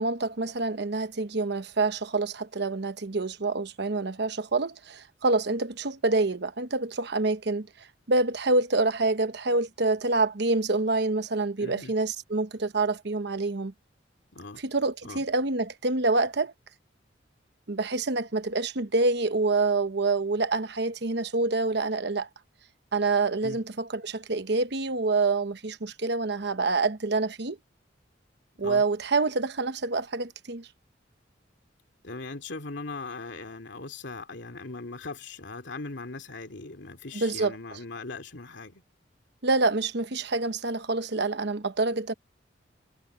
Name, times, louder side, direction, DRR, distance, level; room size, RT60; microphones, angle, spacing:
voice 1, 0.0-13.7 14.6-16.5 17.7-22.3 22.9-27.6 28.6-30.7 37.1-37.5 39.4-42.1, right 3 dB, 60° right, 1.0 m, -27 dB
voice 2, 11.6-11.9 14.3-14.6 15.0-15.2 23.4-23.6 28.6-28.8 32.0-38.8, left 3 dB, 70° left, 2.7 m, -39 dB
head